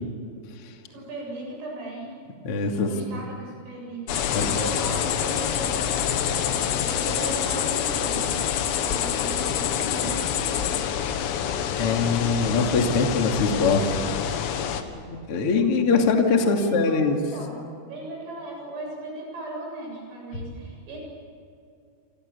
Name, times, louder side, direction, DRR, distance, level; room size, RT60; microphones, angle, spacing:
voice 1, 0.9-2.2 2.8-8.4 8.8-10.9 16.3-21.0, right 2 dB, 75° right, -1 dB, 10.5 m, -37 dB
voice 2, 2.4-3.2 4.3-4.5 11.8-14.0 14.9-17.2 20.3-20.4, left 4 dB, 40° left, 2 dB, 2.5 m, -23 dB
sound 1, 4.1-14.8, left 9 dB, 85° left, 4.3 m, -26 dB
29.0 x 27.5 x 7.1 m, 2.5 s
omnidirectional pair, 5.9 m